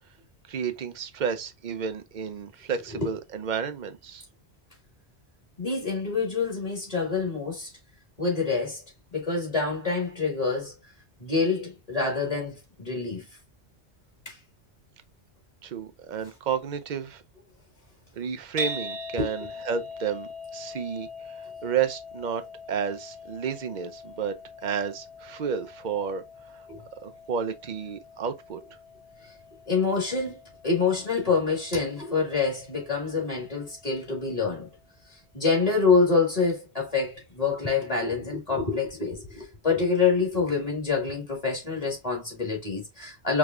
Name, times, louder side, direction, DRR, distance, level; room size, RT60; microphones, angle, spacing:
voice 1, 0.5-4.3 15.6-17.2 18.1-22.4 22.7-24.4 24.6-26.2 26.5-26.7 27.0-28.6, right 7 dB, 55° right, 0.6 m, -31 dB
voice 2, 5.6-7.7 8.2-8.8 9.1-10.7 11.2-13.2 14.2-14.4 19.2-19.3 26.7-26.8 29.2-29.3 29.7-30.4 30.6-34.7 35.1-43.4, left 4 dB, 35° left, 1.8 m, -26 dB
sound 1, 18.6-34.8, left 1 dB, 70° right, 0.9 m, -42 dB
4.7 x 3.1 x 2.4 m
omnidirectional pair, 1.1 m